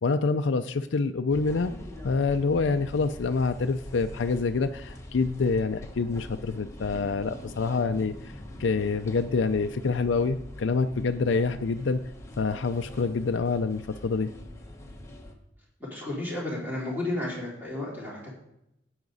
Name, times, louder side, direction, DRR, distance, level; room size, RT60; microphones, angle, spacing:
voice 1, 0.0-1.7 2.0-8.3 8.6-12.0 12.4-14.3, left 4 dB, 70° left, 7 dB, 0.5 m, -26 dB
sound 1, 1.3-15.3, left 1 dB, 15° left, 1.1 m, -43 dB
voice 2, 15.9-18.4, left 1 dB, 10° right, -6 dB, 3.8 m, -32 dB
12.0 x 8.8 x 4.0 m, 0.81 s
head